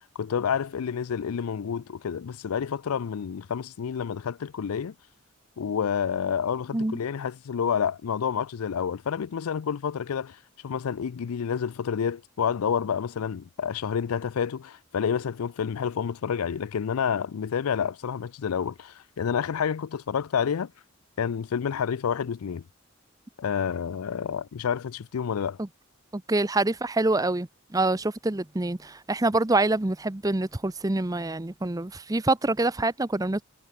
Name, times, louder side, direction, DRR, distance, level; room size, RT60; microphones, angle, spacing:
voice 1, 0.2-4.9 5.6-20.7 21.2-22.6 23.4-25.6, left 7 dB, 90° left, 0.4 m, -29 dB
voice 2, 26.1-33.4, right 2 dB, 15° right, 0.6 m, -26 dB
head